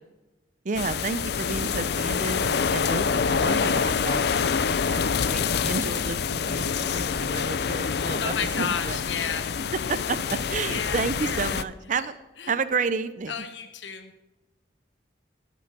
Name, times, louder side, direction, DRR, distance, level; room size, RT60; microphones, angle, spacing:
voice 1, 0.6-4.4 4.9-9.0 9.9-12.1 12.5-13.3, right 4 dB, 45° right, 13 dB, 0.5 m, -31 dB
sound 1, 0.7-11.6, left 6 dB, 60° left, 0.5 m, -26 dB
voice 2, 8.1-9.5 10.6-11.4 11.9-12.1 12.4-12.5 13.3-14.1, left 7 dB, 85° left, 8 dB, 0.9 m, -32 dB
17.0 x 6.1 x 6.0 m, 1.1 s
head